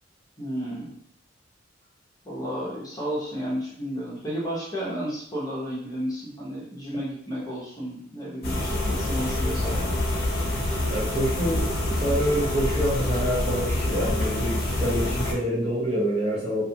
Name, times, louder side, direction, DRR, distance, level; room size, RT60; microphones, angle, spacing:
voice 1, 0.4-0.9 2.2-9.9, equal, 20° left, -6 dB, 0.8 m, -32 dB
sound 1, 8.4-15.3, left 1 dB, 50° left, 0.6 m, -26 dB
voice 2, 10.9-16.7, equal, 30° right, -7 dB, 0.8 m, -26 dB
2.4 x 2.3 x 2.8 m, 0.68 s
head